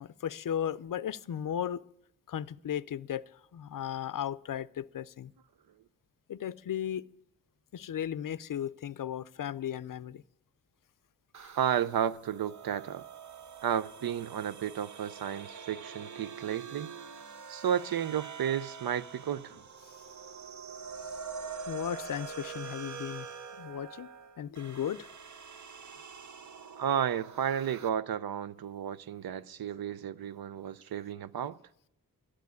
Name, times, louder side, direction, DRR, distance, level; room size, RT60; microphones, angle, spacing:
voice 1, 0.0-1.8 2.3-3.2 3.5-5.3 6.3-7.0 7.7-10.2 21.7-23.3 23.6-24.1 24.4-25.1, left 9 dB, 65° left, 0.5 m, -35 dB
sound 1, 11.3-27.9, right 6 dB, 55° right, 0.7 m, -45 dB
voice 2, 11.6-13.0 13.6-16.9 17.5-19.6 26.8-31.6, right 9 dB, 85° right, 0.5 m, -32 dB
11.5 x 7.5 x 9.5 m
wide cardioid pair, 90°, 35 cm